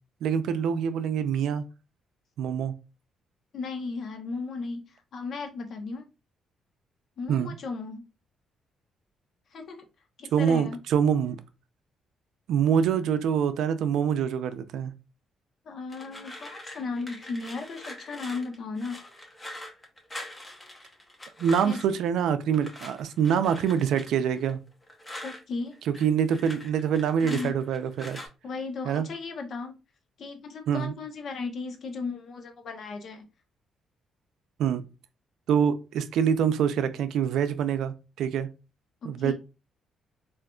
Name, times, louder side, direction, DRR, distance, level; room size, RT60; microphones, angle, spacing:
voice 1, 0.2-1.6 2.4-2.7 7.3-7.5 10.3-11.4 12.5-14.9 21.4-24.6 26.0-28.2 28.9-29.1 30.7-30.9 34.6-34.8 35.5-38.5 39.0-39.3, right 8 dB, 80° right, 0.4 m, -25 dB
voice 2, 3.5-6.1 7.2-8.0 9.5-9.9 10.2-10.8 15.7-19.0 21.6-21.8 25.2-25.8 27.2-27.5 28.4-29.8 30.2-33.2 39.0-39.3, left 4 dB, 60° left, 0.8 m, -35 dB
sound 1, 15.9-22.0 22.5-25.4 25.7-28.3, left 1 dB, 20° left, 0.8 m, -43 dB
3.6 x 2.5 x 2.3 m
cardioid pair, 90°, 0 cm